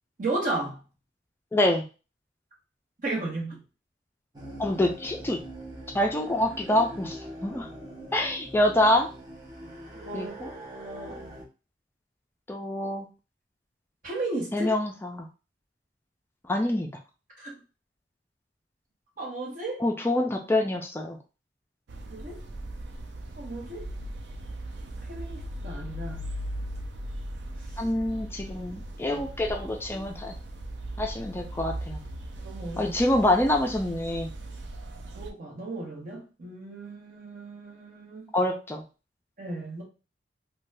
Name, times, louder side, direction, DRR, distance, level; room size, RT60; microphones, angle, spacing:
voice 1, 0.2-0.8 3.0-3.6 9.9-11.2 14.0-14.7 17.4-17.5 19.2-19.8 22.1-22.4 23.4-23.9 25.1-26.3 32.4-33.0 35.2-38.3 39.4-39.8, right 2 dB, 50° right, -2 dB, 1.1 m, -34 dB
voice 2, 1.5-1.8 4.6-5.4 5.9-7.7 8.1-9.1 10.1-10.5 12.5-13.1 14.5-15.3 16.5-16.9 19.8-21.2 27.8-30.3 31.0-32.0 32.8-34.3 38.3-38.8, left 1 dB, 15° left, 2 dB, 0.3 m, -26 dB
sound 1, 4.3-11.4, right 1 dB, 20° right, 0.7 m, -42 dB
sound 2, 21.9-35.3, right 1 dB, 65° right, 0.4 m, -38 dB
2.6 x 2.2 x 3.2 m, 0.32 s
head